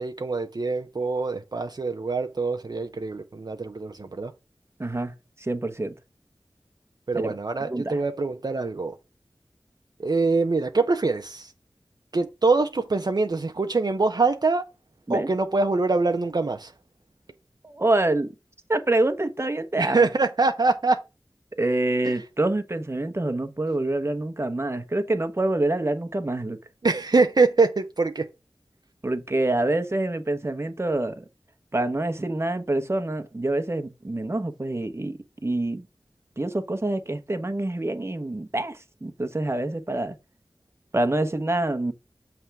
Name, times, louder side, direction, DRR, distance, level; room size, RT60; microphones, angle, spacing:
voice 1, 0.0-4.3 7.1-9.0 10.0-11.5 12.1-14.7 15.1-16.7 19.8-21.0 22.0-22.1 26.8-28.3, right 3 dB, 55° right, 0.7 m, -24 dB
voice 2, 4.8-5.9 7.2-7.3 7.7-8.0 15.1-15.3 17.6-18.3 18.7-20.1 21.6-26.6 29.0-31.2 31.7-35.9 36.4-40.1 40.9-41.9, right 2 dB, 30° right, 1.0 m, -26 dB
7.1 x 3.4 x 6.0 m
wide cardioid pair, 45°, 8 cm